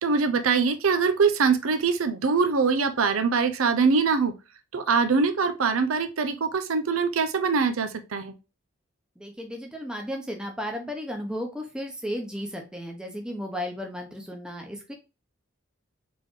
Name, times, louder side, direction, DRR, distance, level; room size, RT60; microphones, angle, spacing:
voice 1, 0.0-4.3 4.7-8.3, right 5 dB, 90° right, 9 dB, 0.6 m, -23 dB
voice 2, 9.2-14.9, equal, 5° right, 2 dB, 0.8 m, -34 dB
4.3 x 3.7 x 3.1 m, 0.29 s
head